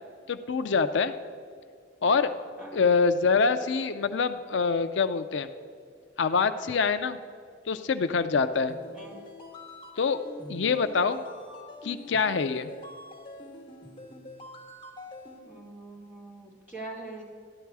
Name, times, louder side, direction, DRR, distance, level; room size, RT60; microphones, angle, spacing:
voice 1, 0.3-1.1 2.0-2.3 2.7-5.5 6.2-7.2 7.7-8.7 10.0-10.2 10.5-11.2 11.8-12.7, left 5 dB, 70° left, 10 dB, 0.5 m, -25 dB
voice 2, 2.6-2.9 8.9-9.2 15.5-17.2, right 2 dB, 10° right, -5 dB, 2.7 m, -43 dB
sound 1, 8.5-15.4, left 1 dB, 25° left, 1.5 m, -45 dB
14.0 x 11.0 x 4.7 m, 2.2 s
head